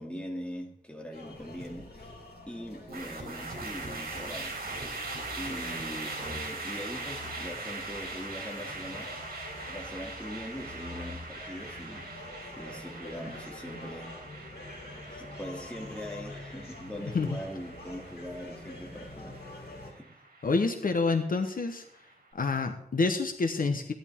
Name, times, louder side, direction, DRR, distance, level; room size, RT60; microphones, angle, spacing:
voice 1, 0.0-2.1 2.5-4.6 5.4-9.1 9.7-12.1 12.6-14.1 15.1-20.1, equal, 5° left, 1 dB, 2.5 m, -41 dB
sound 1, 1.1-19.9, left 2 dB, 90° left, 3.2 m, -46 dB
sound 2, 2.9-22.1, right 3 dB, 75° right, 3.0 m, -41 dB
voice 2, 17.0-17.4 20.4-21.8 22.3-23.9, left 3 dB, 65° left, 6 dB, 1.1 m, -28 dB
16.0 x 11.0 x 3.6 m, 0.73 s
wide cardioid pair, 95°, 16 cm